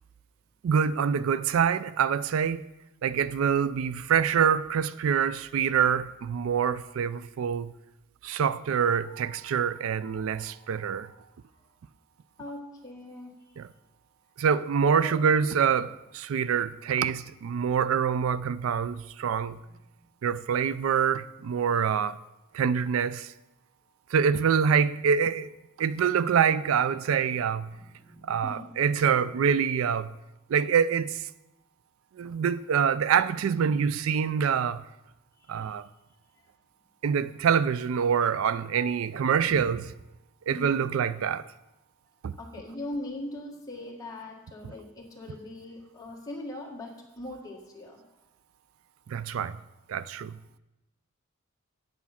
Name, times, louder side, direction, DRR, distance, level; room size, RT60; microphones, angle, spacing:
voice 1, 0.6-2.6 3.0-7.7 8.2-11.1 13.6-13.7 14.4-19.6 20.2-22.2 22.5-23.3 24.1-25.5 25.8-27.7 28.3-30.1 30.5-31.2 32.2-34.8 35.5-35.9 37.0-39.9 40.5-41.4 42.2-42.3 49.1-49.6 49.9-50.3, right 7 dB, 80° right, 0.4 m, -25 dB
voice 2, 12.4-13.6 15.0-15.5 19.4-20.3 27.7-28.8 35.4-35.8 36.3-36.5 40.5-40.9 42.3-48.0, left 1 dB, 20° left, 1.8 m, -41 dB
8.5 x 8.3 x 5.7 m
head